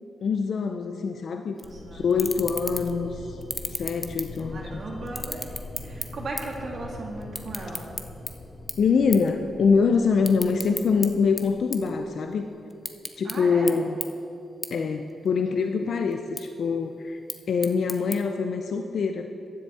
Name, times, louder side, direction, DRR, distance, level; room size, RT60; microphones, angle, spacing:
voice 1, 0.2-1.6 1.9-3.4 3.7-4.7 8.8-12.5 13.2-14.0 14.7-17.2 17.5-19.3, left 5 dB, 70° left, 5 dB, 0.6 m, -24 dB
sound 1, 1.6-12.2, left 2 dB, 40° left, 3.2 m, -42 dB
sound 2, 1.6-1.7 2.1-3.0 3.4-4.7 5.1-6.6 6.9-8.3 8.7-8.9 9.1-9.3 9.7-11.1 11.4-12.3 12.7-13.4 13.7-13.8 14.0-14.1 14.6-14.7 15.1-15.6 16.1-16.4 17.1-18.2, left 1 dB, 15° left, 0.8 m, -34 dB
voice 2, 1.6-2.1 4.5-5.5 5.8-7.9 13.2-13.8, right 2 dB, 65° right, -2 dB, 1.9 m, -37 dB
15.0 x 10.0 x 4.3 m, 2.7 s
cardioid pair, 75°, 0 cm